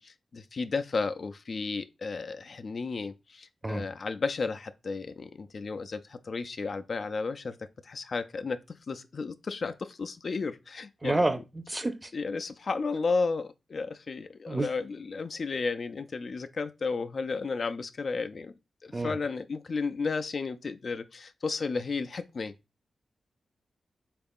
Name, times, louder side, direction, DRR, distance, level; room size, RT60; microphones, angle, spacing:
voice 1, 0.0-11.2 12.1-18.5 18.8-22.5, left 4 dB, 60° left, 0.3 m, -33 dB
voice 2, 11.0-12.1 14.5-14.7 18.9-19.1, right 2 dB, 25° right, 0.5 m, -29 dB
3.6 x 2.4 x 3.5 m
supercardioid pair, 45°, 0 cm